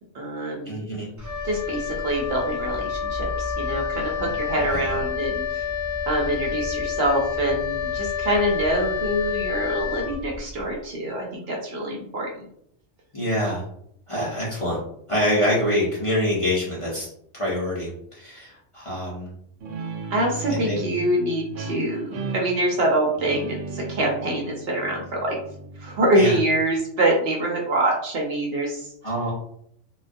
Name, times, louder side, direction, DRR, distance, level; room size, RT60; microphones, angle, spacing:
voice 1, 0.1-0.8 1.4-5.6 6.1-12.3 20.1-25.4 25.8-28.9, right 1 dB, 60° right, -1 dB, 0.7 m, -25 dB
voice 2, 0.7-1.1 4.7-4.8 13.1-13.6 14.1-14.8 15.1-17.1 17.3-19.3 20.6-20.8 26.1-26.3 29.0-29.3, equal, 35° left, -7 dB, 0.6 m, -25 dB
Wind instrument woodwind instrument, 1.2-10.7, left 6 dB, 20° right, 0.5 m, -28 dB
Guitar, 19.6-26.8, right 4 dB, 85° right, 1.0 m, -36 dB
2.2 x 2.2 x 2.5 m, 0.70 s
omnidirectional pair, 1.3 m